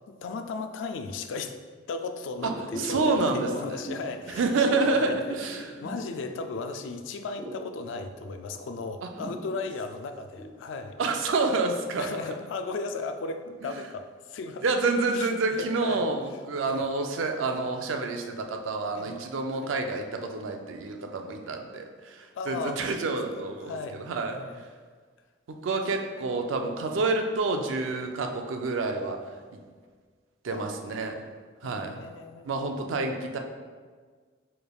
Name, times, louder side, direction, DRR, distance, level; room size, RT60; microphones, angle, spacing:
voice 1, 0.1-1.6 1.9-11.0 12.0-14.6 15.1-16.0 16.7-16.9 17.5-17.6 18.9-19.2 19.5-19.7 22.3-22.9 23.6-24.1 24.3-24.7 30.5-31.2 31.6-33.1, left 3 dB, 75° left, 8 dB, 0.3 m, -36 dB
sound 1, 2.4-6.8 7.0-10.6 11.0-11.1, right 1 dB, ahead, 1.0 m, -39 dB
voice 2, 2.8-3.8 4.4-5.8 9.0-9.1 11.0-12.2 14.6-24.4 25.6-29.2 30.4-31.2 31.6-32.0 32.4-33.4, right 3 dB, 85° right, 4 dB, 0.4 m, -28 dB
4.8 x 3.2 x 2.3 m, 1.6 s
head